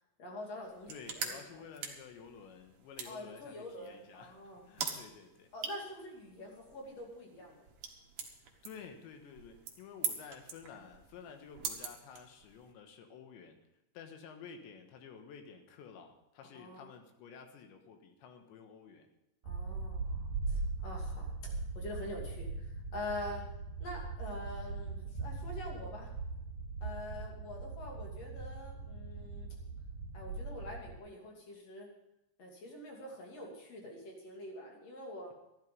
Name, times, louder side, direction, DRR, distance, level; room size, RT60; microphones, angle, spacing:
voice 1, 0.2-1.6 3.0-4.6 5.5-7.6 16.5-16.9 19.4-23.4 23.8-26.1 26.8-29.6 30.1-31.9 32.4-35.3, left 1 dB, 40° left, 0 dB, 3.3 m, -45 dB
sound 1, 0.6-12.7, right 6 dB, 70° right, 1.3 m, -45 dB
voice 2, 0.9-5.5 8.6-13.6 14.0-19.1, left 6 dB, 80° left, 5 dB, 3.6 m, -52 dB
sound 2, 19.4-31.0, right 3 dB, 50° right, 3.2 m, -40 dB
14.0 x 11.5 x 5.4 m, 0.91 s
omnidirectional pair, 5.1 m